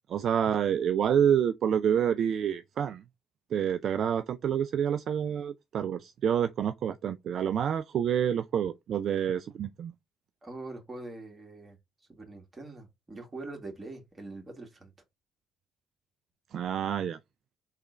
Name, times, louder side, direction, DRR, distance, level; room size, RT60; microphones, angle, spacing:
voice 1, 0.1-3.0 3.5-9.9 16.5-17.2, right 8 dB, 55° right, 0.3 m, -28 dB
voice 2, 10.4-11.8 12.1-14.9, right 2 dB, 25° right, 1.9 m, -43 dB
3.6 x 3.2 x 3.9 m
hypercardioid pair, 50°, 0 cm